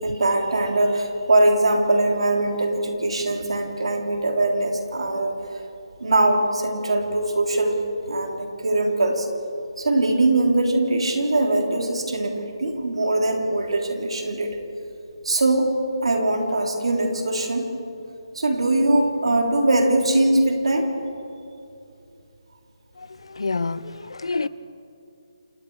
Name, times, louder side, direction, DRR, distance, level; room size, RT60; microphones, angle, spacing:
voice 1, 0.0-5.4 6.0-7.8 8.1-9.3 9.8-14.5 15.2-15.7 16.0-17.7 18.3-20.9, right 2 dB, 85° right, 3.5 m, -21 dB
voice 2, 23.0-24.5, left 3 dB, 80° left, 0.8 m, -28 dB
28.0 x 19.5 x 4.8 m
hypercardioid pair, 175°, 3 cm